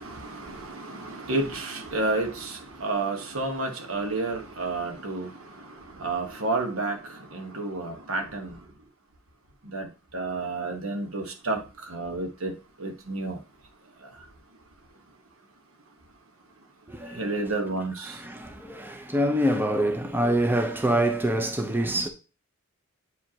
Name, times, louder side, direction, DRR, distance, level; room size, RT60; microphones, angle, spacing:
voice 1, 0.0-5.3 6.0-7.0 7.3-8.5 9.7-9.9 10.1-12.5 12.8-13.4 17.2-18.1, right 2 dB, 85° right, 1.3 m, -30 dB
voice 2, 16.9-17.3 18.1-22.1, right 1 dB, 10° right, 0.7 m, -25 dB
8.0 x 4.9 x 2.9 m
head